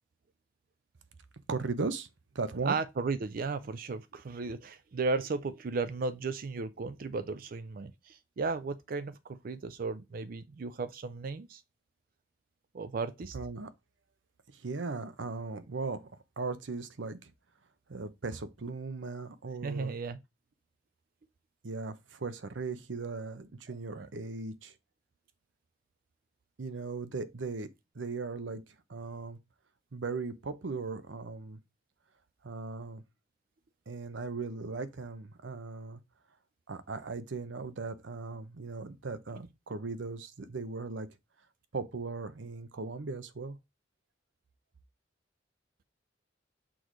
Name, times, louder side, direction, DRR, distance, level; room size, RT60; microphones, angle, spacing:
voice 1, 1.5-2.1 2.3-2.8 13.3-13.7 14.5-16.1 16.4-17.3 17.9-19.9 21.6-24.7 26.6-27.7 27.9-29.4 29.9-31.6 32.4-33.0 33.9-36.0 36.7-41.1 41.7-43.6, right 4 dB, 90° right, 0.7 m, -38 dB
voice 2, 2.7-11.6 12.7-13.4 19.6-20.2 23.9-24.1, right 4 dB, 50° right, 0.4 m, -35 dB
6.2 x 3.1 x 5.0 m
head